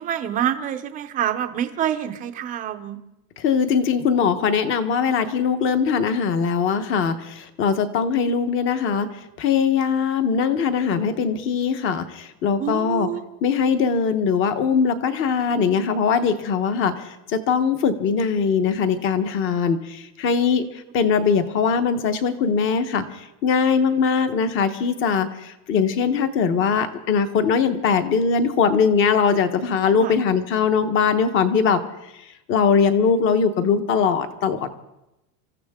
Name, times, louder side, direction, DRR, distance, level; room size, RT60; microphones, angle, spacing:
voice 1, 0.0-3.0 12.6-13.2 30.0-30.1, right 10 dB, 20° right, 8 dB, 0.6 m, -26 dB
voice 2, 3.4-9.1 9.4-13.1 13.4-20.7 20.9-23.1 23.4-31.8 32.5-34.7, left 6 dB, 30° left, 10 dB, 1.0 m, -21 dB
27.0 x 14.5 x 3.6 m, 0.90 s
supercardioid pair, 175°, 44 cm